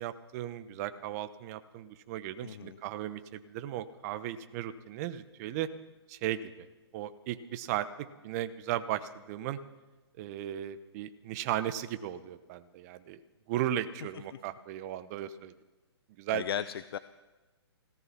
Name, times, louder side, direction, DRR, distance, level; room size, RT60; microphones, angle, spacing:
voice 1, 0.0-5.7 6.1-6.7 6.9-9.6 10.2-13.2 13.5-15.5 16.2-16.4, right 12 dB, 35° right, 12 dB, 1.0 m, -36 dB
voice 2, 2.4-2.8 16.3-17.0, left 10 dB, 60° left, 14 dB, 0.6 m, -35 dB
17.5 x 13.5 x 5.9 m, 1.2 s
hypercardioid pair, 130°, 14 cm